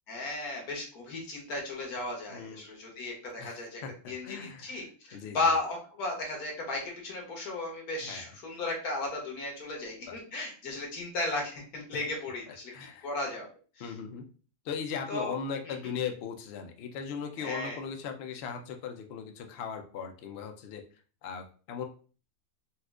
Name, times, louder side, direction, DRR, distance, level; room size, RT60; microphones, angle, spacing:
voice 1, 0.1-12.7 13.0-13.5 13.8-13.9 15.1-15.4 15.6-15.8 17.4-17.8, left 2 dB, 85° left, 0 dB, 1.5 m, -35 dB
voice 2, 3.4-4.8 5.1-5.4 8.0-8.3 10.1-10.2 12.7-13.1 13.8-14.2 14.6-20.9 21.2-21.8, left 6 dB, 65° left, 5 dB, 0.6 m, -38 dB
4.2 x 2.4 x 2.3 m, 0.38 s
omnidirectional pair, 1.5 m